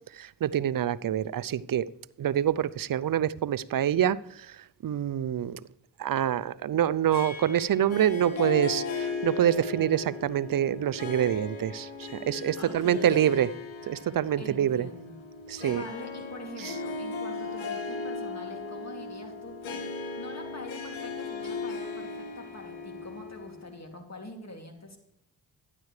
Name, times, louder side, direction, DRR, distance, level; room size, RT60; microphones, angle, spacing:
voice 1, 0.1-1.8 2.2-4.6 4.8-5.6 6.0-13.5 13.9-14.9 15.5-15.8 16.6-16.8, right 10 dB, 50° right, 0.5 m, -26 dB
Harp, 7.1-23.9, left 4 dB, 80° left, 1.9 m, -37 dB
voice 2, 12.6-13.5 14.4-15.2 15.7-25.0, left 1 dB, 35° left, 2.6 m, -45 dB
12.0 x 10.5 x 3.2 m
supercardioid pair, 45°, 46 cm